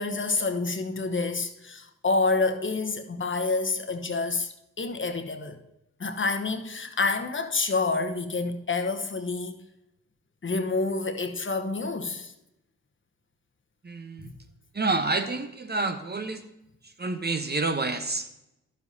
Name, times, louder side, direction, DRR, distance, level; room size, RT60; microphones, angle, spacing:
voice 1, 0.0-5.6 6.0-9.6 10.4-12.3 14.2-14.3, left 3 dB, 35° left, 1.1 m, -28 dB
voice 2, 13.8-14.3 14.7-16.4 17.0-18.3, right 3 dB, 30° right, 0.9 m, -28 dB
11.5 x 7.2 x 2.8 m
supercardioid pair, 45°, 34 cm